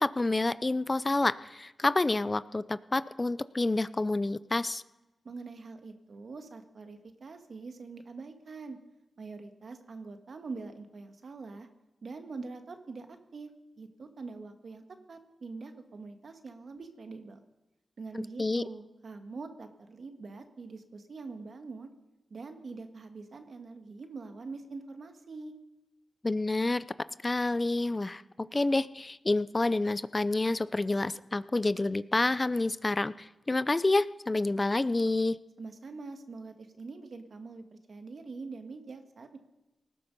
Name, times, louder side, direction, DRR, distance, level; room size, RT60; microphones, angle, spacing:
voice 1, 0.0-4.8 18.1-18.6 26.2-26.8 27.2-35.4, left 2 dB, 35° left, 16 dB, 0.5 m, -28 dB
voice 2, 5.2-8.8 9.2-11.7 12.0-13.5 13.8-17.4 18.0-21.9 22.3-25.5 35.6-39.4, right 4 dB, 70° right, 6 dB, 1.7 m, -44 dB
19.0 x 12.5 x 5.4 m, 1.0 s
cardioid pair, 50°, 0 cm